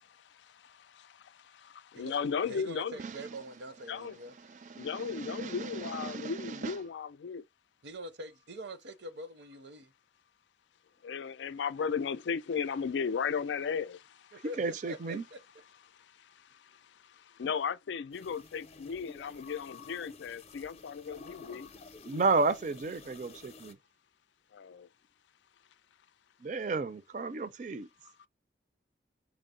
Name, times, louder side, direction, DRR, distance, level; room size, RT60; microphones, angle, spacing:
voice 1, 1.9-3.0 3.9-4.2 4.8-7.4 11.0-14.0 17.4-21.7 24.5-24.9, left 6 dB, 85° left, 0.4 m, -35 dB
voice 2, 2.4-4.3 7.8-9.9 14.3-15.4, right 1 dB, 85° right, 0.7 m, -44 dB
voice 3, 4.5-6.8 14.6-15.2 22.0-23.8 26.4-27.9, right 4 dB, 45° right, 0.4 m, -33 dB
sound 1, 18.1-23.7, left 4 dB, 35° left, 0.5 m, -51 dB
4.5 x 2.0 x 3.7 m
head